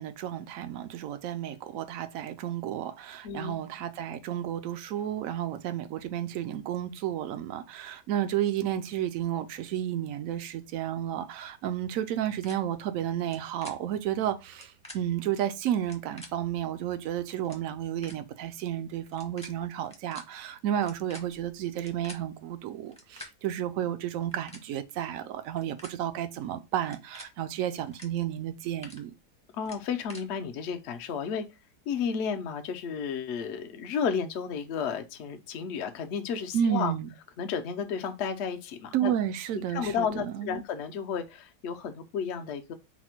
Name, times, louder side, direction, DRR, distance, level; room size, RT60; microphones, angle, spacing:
voice 1, 0.0-29.1 36.5-37.1 38.9-40.6, right 10 dB, 70° right, 0.8 m, -32 dB
voice 2, 3.2-3.6 29.5-31.4 31.9-36.9 37.4-39.1 39.7-42.7, left 6 dB, 65° left, 0.6 m, -32 dB
sound 1, 12.4-12.5 13.2-13.4 13.6-13.7 14.5-15.0 15.8-16.3 17.1-17.2 17.4-17.6 18.0-18.2 19.1-19.5 19.8-20.2 20.8-22.2 22.9-23.3 24.2-24.6 25.4-25.9 26.8-27.3 27.9-28.1 28.4-29.0 29.6-30.2, left 1 dB, 5° left, 0.5 m, -46 dB
4.1 x 2.1 x 4.3 m
omnidirectional pair, 1.7 m